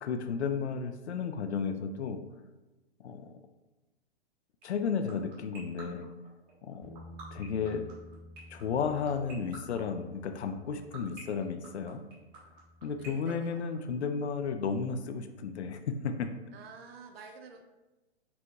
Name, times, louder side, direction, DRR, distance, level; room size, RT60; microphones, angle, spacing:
voice 1, 0.0-2.2 3.0-3.3 4.6-6.1 6.6-6.9 7.3-7.9 8.5-12.0 12.8-16.3, left 5 dB, 90° left, 8 dB, 0.5 m, -33 dB
sound 1, 4.6-14.2, right 4 dB, 30° right, 1.2 m, -47 dB
Bass guitar, 6.8-13.1, left 1 dB, 10° left, 1.1 m, -53 dB
voice 2, 13.0-13.6 16.5-17.6, right 5 dB, 65° right, 4 dB, 0.6 m, -49 dB
4.5 x 4.0 x 2.3 m, 1.1 s
hypercardioid pair, 135°, 32 cm